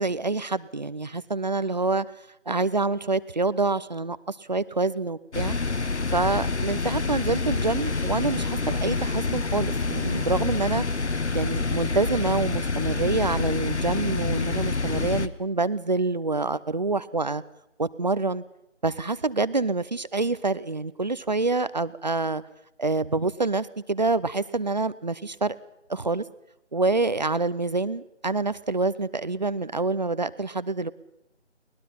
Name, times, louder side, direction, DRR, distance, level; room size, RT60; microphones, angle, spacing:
voice 1, 0.0-2.0 2.5-5.6 6.1-10.8 11.3-17.4 17.8-18.4 18.8-22.4 22.8-25.6 25.9-26.2 26.7-30.9, right 3 dB, 40° right, 17 dB, 0.7 m, -26 dB
sound 1, 5.3-15.3, left 3 dB, 70° left, 1.3 m, -27 dB
23.0 x 20.0 x 5.8 m, 0.82 s
figure-of-eight pair, 165°, 36 cm